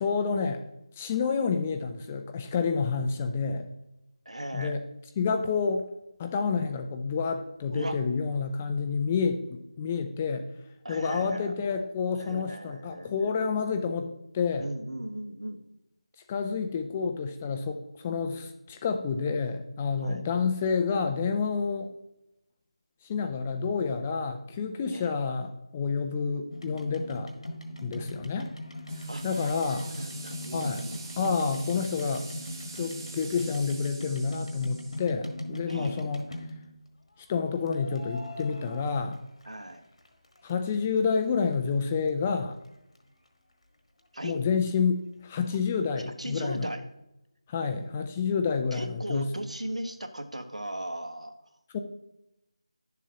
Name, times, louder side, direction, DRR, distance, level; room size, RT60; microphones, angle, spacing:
voice 1, 0.0-0.6 1.0-3.7 4.5-4.8 5.2-5.9 6.2-10.5 10.9-14.7 16.3-21.9 23.0-27.3 27.8-28.5 29.2-29.9 30.5-30.8 31.2-32.3 32.8-36.2 37.3-39.2 40.4-42.6 44.2-46.7 47.5-49.3 51.7-51.8, left 5 dB, 15° left, 7 dB, 0.4 m, -29 dB
voice 2, 4.2-4.8 7.7-8.0 10.8-11.5 12.1-13.4 14.6-15.6 20.0-20.3 24.9-25.2 29.1-31.2 35.7-36.1 39.4-39.8 44.1-44.4 46.0-46.9 48.7-51.3, right 1 dB, 80° right, 8 dB, 1.2 m, -37 dB
sound 1, 26.5-36.8 37.7-39.8 40.0-41.0 41.5-41.6 41.8-41.9 42.1-42.2 42.6-42.7 43.0-43.1, left 1 dB, 70° left, 1.4 m, -40 dB
sound 2, 28.9-35.0, right 3 dB, 20° right, 1.5 m, -45 dB
11.0 x 7.1 x 2.8 m, 0.86 s
figure-of-eight pair, 165°, 3 cm